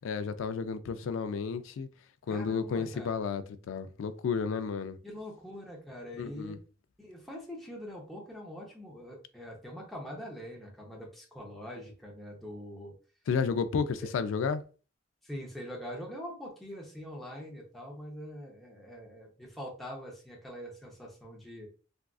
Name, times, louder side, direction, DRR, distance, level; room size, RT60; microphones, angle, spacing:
voice 1, 0.0-1.9 2.3-5.0 6.2-6.6 13.3-14.6, left 5 dB, 70° left, 0.3 m, -32 dB
voice 2, 2.3-3.2 5.0-6.6 7.0-12.9 15.2-21.7, equal, ahead, 0.7 m, -43 dB
3.5 x 2.4 x 2.3 m
head